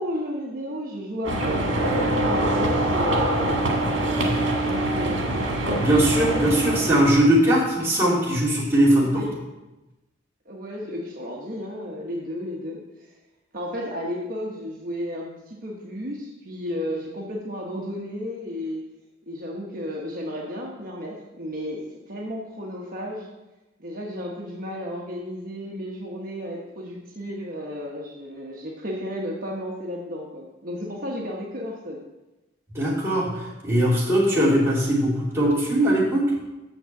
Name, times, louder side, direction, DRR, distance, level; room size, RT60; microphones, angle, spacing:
voice 1, 0.0-5.2 8.9-9.3 10.4-13.2 13.5-18.8 19.3-21.8 22.1-23.3 23.8-32.0, equal, 45° right, -4 dB, 1.2 m, -33 dB
sound 1, 1.2-7.3, right 1 dB, 70° right, 1.8 m, -24 dB
voice 2, 5.8-9.2 32.7-36.3, equal, 15° right, -7 dB, 3.1 m, -20 dB
6.5 x 6.5 x 7.6 m, 1.0 s
head